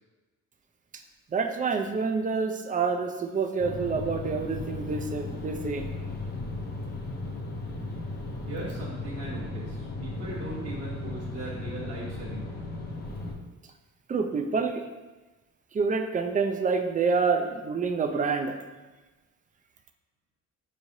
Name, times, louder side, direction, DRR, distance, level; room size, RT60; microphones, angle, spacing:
voice 1, 1.3-5.8 14.1-14.8 15.7-18.6, right 5 dB, 25° right, 5 dB, 0.4 m, -27 dB
sound 1, 3.6-13.3, left 2 dB, 30° left, 0.6 m, -36 dB
voice 2, 8.5-12.6, right 2 dB, 50° right, -7 dB, 1.1 m, -39 dB
4.7 x 3.2 x 2.7 m, 1.2 s
cardioid pair, 90°, 30 cm